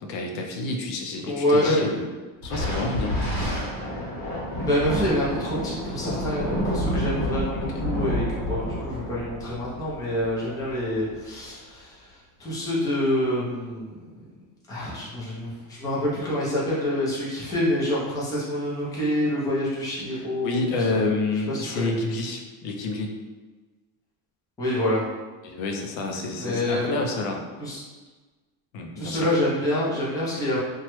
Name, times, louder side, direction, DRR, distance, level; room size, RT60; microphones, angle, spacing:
voice 1, 0.0-2.0 2.4-3.2 7.5-7.8 20.1-23.1 25.4-27.4 28.7-29.3, left 2 dB, 70° left, 2 dB, 0.5 m, -29 dB
voice 2, 1.3-1.8 4.6-12.0 12.4-14.0 14.7-21.0 21.5-21.9 24.6-25.0 26.4-26.9 27.6-27.8 29.0-30.6, left 1 dB, 10° left, -7 dB, 0.5 m, -26 dB
Thunder, 2.4-11.2, equal, 30° left, 1.1 m, -29 dB
3.0 x 2.3 x 2.9 m, 1.3 s
cardioid pair, 175°, 38 cm